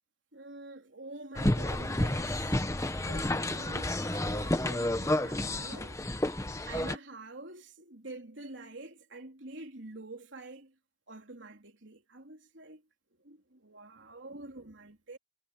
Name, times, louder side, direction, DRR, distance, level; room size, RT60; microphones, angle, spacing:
voice 1, 0.3-2.5 3.1-6.0 6.6-10.7 11.1-12.8 13.2-15.2, right 2 dB, 70° right, 3.4 m, -47 dB
sound 1, 1.3-7.0, left 1 dB, 15° left, 0.9 m, -30 dB
head